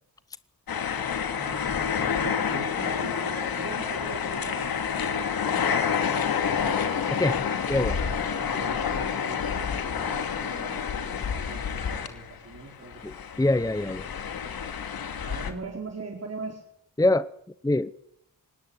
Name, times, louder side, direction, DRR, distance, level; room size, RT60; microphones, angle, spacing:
sound 1, 0.7-12.6 12.8-15.5, left 7 dB, 85° left, 2.6 m, -29 dB
voice 1, 1.3-4.8 5.1-7.2 7.9-13.0 15.2-16.6, right 3 dB, 45° right, 1 dB, 4.5 m, -41 dB
voice 2, 7.2-8.0 13.0-14.1 17.0-17.3 17.6-17.9, left 2 dB, 10° left, 15 dB, 0.8 m, -24 dB
20.5 x 18.0 x 9.6 m, 0.75 s
cardioid pair, 60°, 35 cm